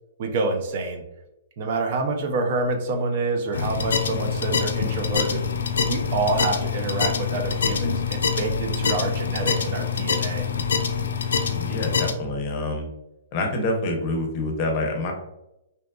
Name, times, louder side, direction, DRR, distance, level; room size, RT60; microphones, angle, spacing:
voice 1, 0.2-1.0 1.6-5.5 5.9-10.5, right 3 dB, 50° right, 4 dB, 0.4 m, -27 dB
sound 1, 3.5-12.1, left 6 dB, 85° left, 0.3 m, -25 dB
voice 2, 11.6-12.9 13.3-15.1, left 2 dB, 40° left, 2 dB, 0.6 m, -26 dB
2.8 x 2.2 x 2.2 m, 0.90 s
hypercardioid pair, 145°, 0 cm